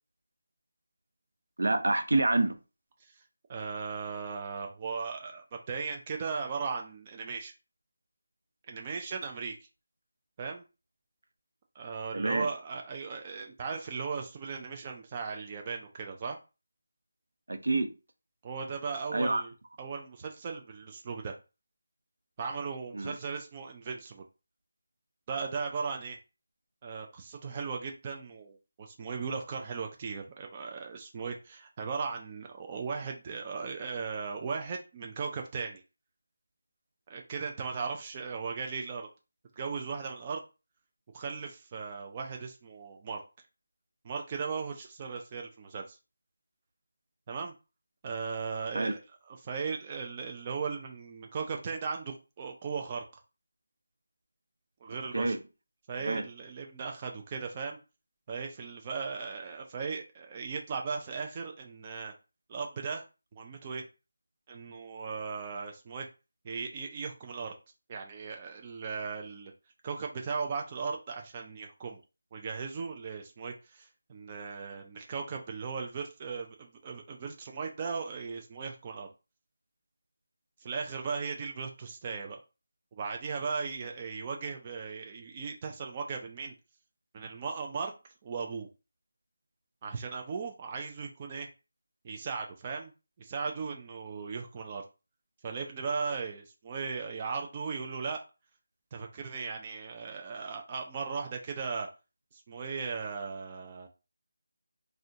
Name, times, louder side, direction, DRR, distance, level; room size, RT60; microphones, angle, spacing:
voice 1, 1.6-2.6 12.1-12.5 17.5-17.9 19.1-19.4 22.9-23.1 48.7-48.9 55.1-55.4 56.1-56.2, right 2 dB, 80° right, 6 dB, 0.6 m, -27 dB
voice 2, 3.5-7.5 8.7-9.6 10.4-10.6 11.8-16.4 18.4-21.3 22.4-24.2 25.3-26.2 26.8-35.8 37.1-39.1 39.6-40.4 41.1-43.2 44.0-46.0 47.3-47.5 48.0-49.0 49.3-53.0 54.8-55.4 55.9-57.8 58.3-62.1 62.5-63.0 63.3-63.9 64.5-66.1 66.4-67.5 67.9-69.5 69.8-72.0 72.3-79.1 80.6-82.4 82.9-86.5 87.1-87.9 88.2-88.7 89.8-91.5 92.0-92.9 93.2-94.8 95.4-98.2 98.9-101.9 102.3-103.9, right 5 dB, 20° right, 3 dB, 0.3 m, -37 dB
3.5 x 2.1 x 2.7 m, 0.30 s
figure-of-eight pair, 175°, 0 cm